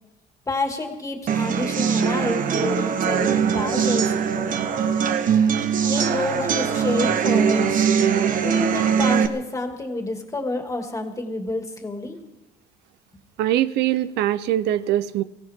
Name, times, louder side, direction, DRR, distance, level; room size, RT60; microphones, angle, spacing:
voice 1, 0.5-4.1 5.8-7.8 8.4-12.2, left 2 dB, 20° left, 3 dB, 2.5 m, -28 dB
sound 1, 1.3-9.3, right 7 dB, 50° right, 1.2 m, -21 dB
voice 2, 13.4-15.2, right 13 dB, 80° right, 15 dB, 0.6 m, -22 dB
22.5 x 16.5 x 3.6 m, 1.0 s
cardioid pair, 110°, 17 cm